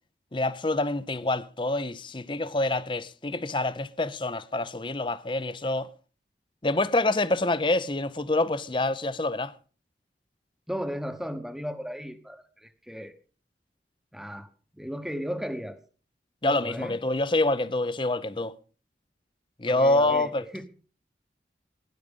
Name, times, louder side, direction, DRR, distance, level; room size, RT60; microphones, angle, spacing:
voice 1, 0.3-5.9 6.6-9.5 16.4-18.5 19.6-20.5, left 2 dB, 25° left, 0.7 m, -26 dB
voice 2, 10.7-13.1 14.1-14.5 14.7-15.8 16.4-17.0 19.7-20.7, equal, ahead, 1.1 m, -35 dB
17.5 x 11.0 x 5.3 m
head